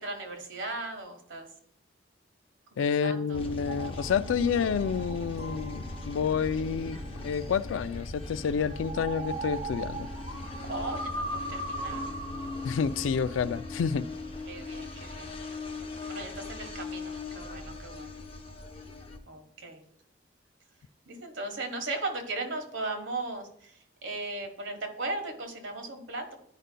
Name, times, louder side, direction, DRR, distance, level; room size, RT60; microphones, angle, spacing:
voice 1, 0.0-1.5 2.7-3.4 10.7-12.1 14.4-15.3 16.1-18.2 19.3-19.8 21.1-26.4, right 2 dB, 90° right, 1.3 m, -37 dB
voice 2, 2.8-7.0 7.2-10.1 12.6-14.1, left 6 dB, 90° left, 0.3 m, -29 dB
sound 1, 3.3-19.2, left 2 dB, 30° left, 0.7 m, -40 dB
sound 2, 3.7-14.7, right 1 dB, 35° right, 0.8 m, -41 dB
11.0 x 5.1 x 2.2 m
head